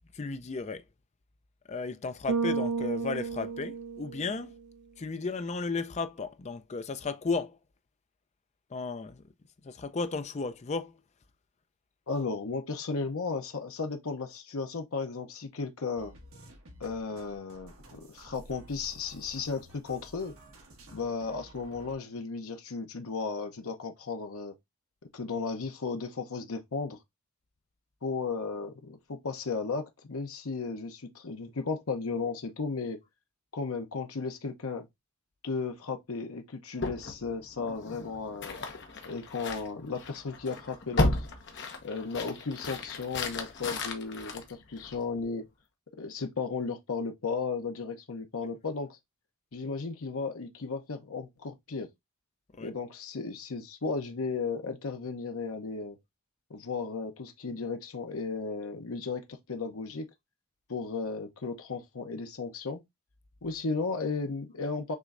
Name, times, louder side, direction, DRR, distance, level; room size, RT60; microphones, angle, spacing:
voice 1, 0.1-0.8 1.7-4.5 5.0-7.6 8.7-9.2 9.6-10.9 52.6-52.7, left 4 dB, 30° left, 0.4 m, -34 dB
Bass guitar, 2.3-4.6, right 5 dB, 85° right, 0.5 m, -32 dB
voice 2, 12.1-16.2 16.8-20.3 20.9-24.5 25.1-27.0 28.0-33.0 33.5-34.9 35.4-38.6 39.0-41.3 41.8-45.5 45.9-49.0 49.5-51.9 52.6-56.0 56.5-60.1 60.7-62.8 63.4-65.0, left 4 dB, 70° left, 0.8 m, -35 dB
sound 1, 15.9-21.9, right 1 dB, 65° right, 1.5 m, -52 dB
sound 2, 36.8-45.2, left 2 dB, 55° left, 1.0 m, -35 dB
6.1 x 3.1 x 2.5 m
head